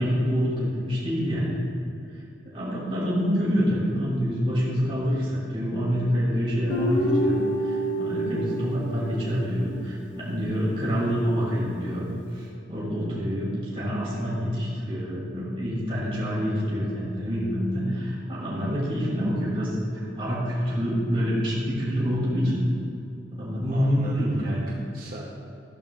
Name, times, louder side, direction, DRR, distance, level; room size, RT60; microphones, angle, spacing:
voice 1, 0.0-1.6 2.4-22.6 23.3-24.7, equal, 30° right, -7 dB, 2.5 m, -27 dB
Guitar, 6.7-10.0, equal, 70° left, 1.4 m, -27 dB
voice 2, 23.7-25.3, right 2 dB, 50° right, -3 dB, 0.9 m, -40 dB
13.0 x 12.5 x 2.4 m, 2.6 s
head